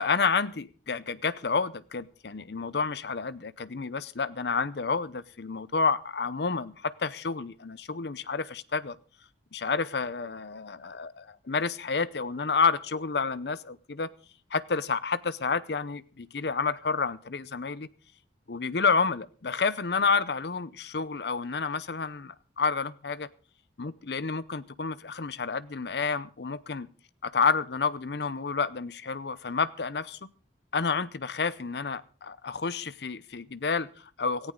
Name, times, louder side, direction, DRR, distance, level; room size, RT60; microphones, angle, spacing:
voice 1, 0.0-9.0 9.5-14.1 14.5-17.9 18.5-23.3 23.8-26.9 27.2-30.3 30.7-34.5, left 5 dB, 75° left, 17 dB, 0.7 m, -29 dB
18.0 x 14.5 x 3.8 m, 0.37 s
head